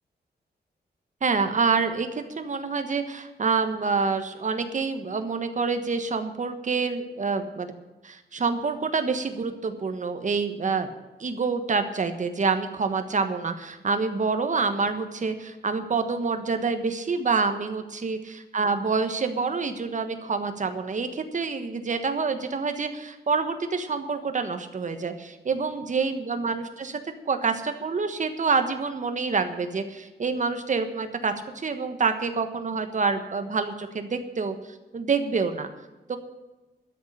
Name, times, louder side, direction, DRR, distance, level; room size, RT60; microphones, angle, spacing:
voice 1, 1.2-7.7 8.0-10.9 11.2-27.0 27.3-34.5 34.9-35.7 36.1-36.2, right 4 dB, 45° right, 8 dB, 1.3 m, -27 dB
13.0 x 6.7 x 9.9 m, 1.1 s
wide cardioid pair, 145°, 17 cm